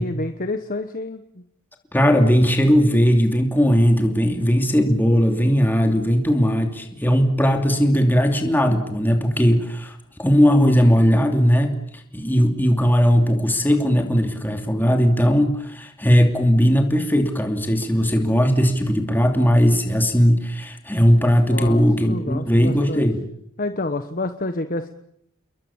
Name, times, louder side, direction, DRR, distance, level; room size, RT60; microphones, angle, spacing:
voice 1, 0.0-1.4 21.5-23.1 23.6-24.9, left 2 dB, 40° left, 9 dB, 1.2 m, -28 dB
voice 2, 1.9-9.9 10.2-23.2, equal, 10° left, 4 dB, 2.8 m, -18 dB
29.5 x 22.0 x 7.3 m, 0.73 s
head